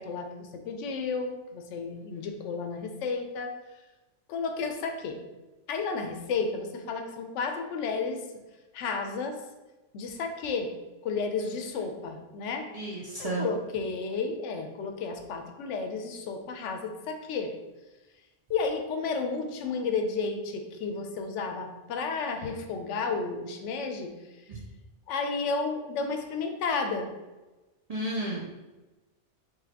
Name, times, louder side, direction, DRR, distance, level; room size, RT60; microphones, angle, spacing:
voice 1, 0.0-3.5 4.3-5.2 5.7-8.2 8.7-9.4 9.9-10.7 11.0-12.7 13.2-17.5 18.5-24.1 25.1-27.1, left 4 dB, 85° left, 5 dB, 0.9 m, -32 dB
voice 2, 1.9-2.3 11.4-11.9 12.7-13.5 24.5-24.6 27.9-28.5, right 2 dB, 55° right, -3 dB, 0.4 m, -34 dB
3.9 x 3.1 x 2.8 m, 1.1 s
omnidirectional pair, 1.2 m